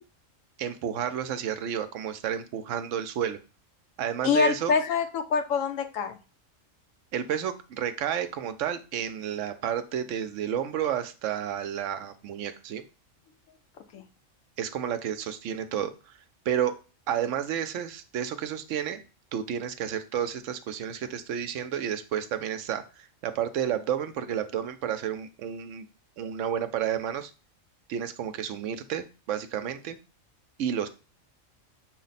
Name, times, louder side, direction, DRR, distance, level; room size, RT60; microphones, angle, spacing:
voice 1, 0.6-3.4 4.0-4.8 7.1-12.8 14.6-16.1 16.5-16.7 17.1-19.0 19.3-25.9 26.2-27.3 27.9-30.0 30.6-30.9, right 9 dB, 75° right, 10 dB, 0.9 m, -31 dB
voice 2, 4.2-6.2 13.9-14.0, left 5 dB, 90° left, 7 dB, 1.1 m, -25 dB
6.2 x 2.1 x 4.0 m, 0.33 s
omnidirectional pair, 1.3 m